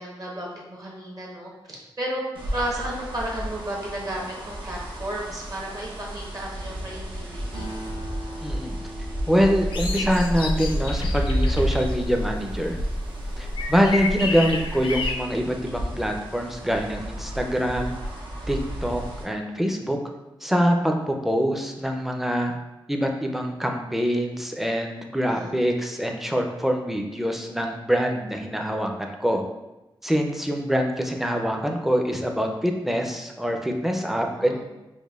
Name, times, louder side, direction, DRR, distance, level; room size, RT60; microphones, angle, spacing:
voice 1, 0.0-2.2 2.5-7.7 25.2-25.5 34.2-34.6, right 1 dB, 45° right, -3 dB, 1.0 m, -33 dB
sound 1, 2.3-19.2, equal, 85° right, 0.6 m, -32 dB
Acoustic guitar, 7.5-11.3, right 1 dB, 65° right, 1.2 m, -41 dB
voice 2, 8.4-8.8 9.3-12.8 13.4-17.9 18.5-20.0 20.4-22.5 22.9-29.4 30.0-34.6, equal, 5° right, 2 dB, 0.4 m, -24 dB
sound 2, 9.7-15.1, left 2 dB, 80° left, 0.4 m, -29 dB
5.0 x 2.1 x 2.3 m, 1.0 s
wide cardioid pair, 85°, 9 cm